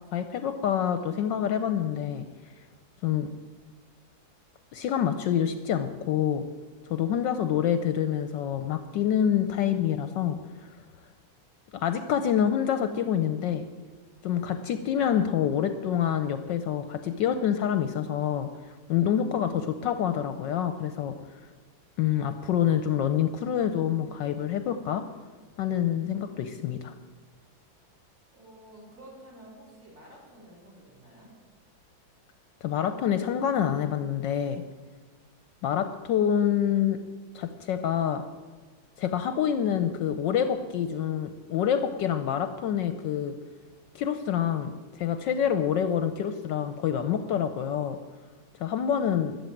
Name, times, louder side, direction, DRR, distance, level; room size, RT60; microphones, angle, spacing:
voice 1, 0.1-2.3 3.0-3.3 4.7-6.5 6.9-10.4 11.7-13.7 14.2-21.2 22.0-25.1 25.6-26.9 32.6-34.6 35.6-37.0 37.3-38.2 39.0-43.4 43.9-48.0 48.6-49.4, left 9 dB, 70° left, 10 dB, 1.2 m, -27 dB
voice 2, 28.3-31.3, right 1 dB, 35° right, -2 dB, 4.3 m, -50 dB
13.5 x 7.4 x 9.1 m, 1.4 s
omnidirectional pair, 2.2 m